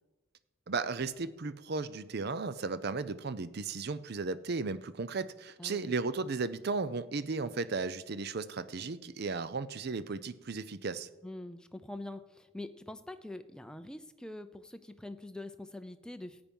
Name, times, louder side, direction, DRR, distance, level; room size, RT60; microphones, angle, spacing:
voice 1, 0.7-11.1, right 4 dB, 50° right, 15 dB, 0.5 m, -35 dB
voice 2, 11.2-16.4, left 1 dB, 5° left, 9 dB, 0.5 m, -44 dB
13.5 x 8.8 x 5.4 m, 1.1 s
head